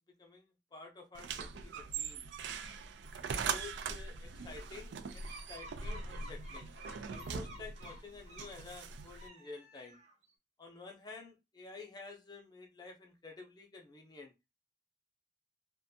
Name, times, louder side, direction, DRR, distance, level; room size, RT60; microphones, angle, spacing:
voice 1, 0.2-2.3 3.2-6.8 7.0-10.0 10.6-14.5, left 3 dB, 20° left, 0.5 m, -51 dB
sound 1, 1.1-9.3, right 5 dB, 80° right, 0.3 m, -41 dB
sound 2, 5.2-8.6 9.1-10.3, right 1 dB, 40° right, 0.6 m, -53 dB
2.5 x 2.3 x 2.6 m
head